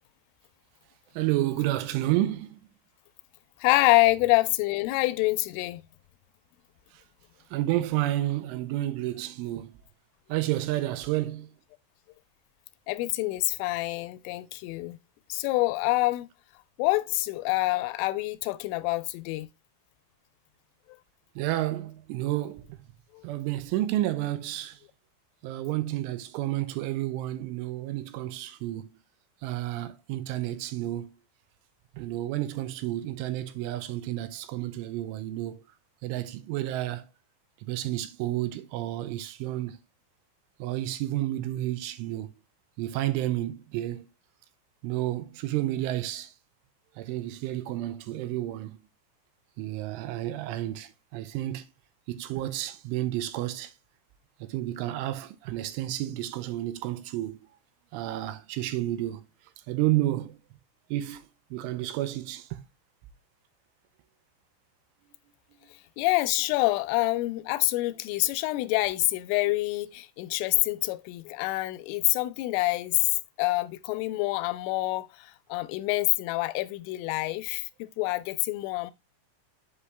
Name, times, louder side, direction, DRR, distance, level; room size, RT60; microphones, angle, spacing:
voice 1, 1.2-2.6 7.5-9.7 10.3-11.5 21.4-22.8 23.2-24.8 25.4-28.9 29.4-31.1 32.0-35.6 36.0-37.0 37.7-39.8 40.6-42.3 42.8-44.1 44.8-46.3 47.0-48.8 49.6-51.6 52.1-53.7 54.5-57.4 57.9-59.2 59.7-60.3 60.9-61.2 61.5-62.5, right 15 dB, 85° right, 3.1 m, -30 dB
voice 2, 3.6-5.8 12.9-15.0 15.3-16.3 16.8-19.5 23.1-23.3 66.0-78.9, left 19 dB, 85° left, 3.0 m, -26 dB
8.0 x 5.7 x 3.2 m
omnidirectional pair, 5.7 m